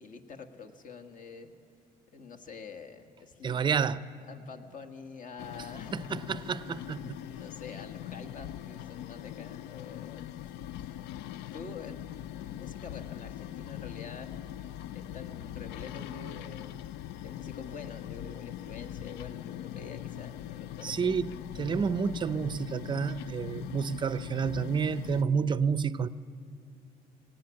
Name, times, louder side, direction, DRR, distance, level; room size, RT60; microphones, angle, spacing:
voice 1, 0.0-1.5 2.1-3.9 4.3-6.5 6.9-10.5 10.8-11.0 11.5-14.3 14.9-16.8 17.2-21.1, left 5 dB, 50° left, 1.7 m, -46 dB
voice 2, 3.4-4.0 5.9-7.2 20.8-26.1, right 6 dB, 30° right, 0.5 m, -30 dB
sound 1, 5.4-25.2, left 12 dB, 85° left, 0.4 m, -41 dB
18.0 x 17.0 x 8.6 m
cardioid pair, 110°, 17 cm